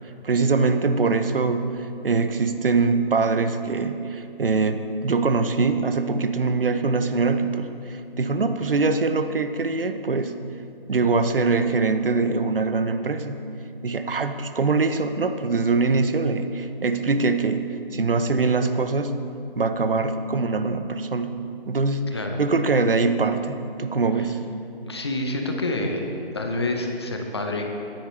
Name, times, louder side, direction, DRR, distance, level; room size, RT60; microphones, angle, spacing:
voice 1, 0.2-10.3 10.9-13.4 13.8-17.6 17.9-19.1 19.6-21.4 21.7-22.0 22.4-24.4, right 4 dB, 70° right, 9 dB, 0.8 m, -23 dB
voice 2, 22.1-22.4 24.8-26.0 26.3-27.6, left 2 dB, 25° left, 3 dB, 0.8 m, -27 dB
14.5 x 10.0 x 3.2 m, 2.6 s
figure-of-eight pair, 160°, 29 cm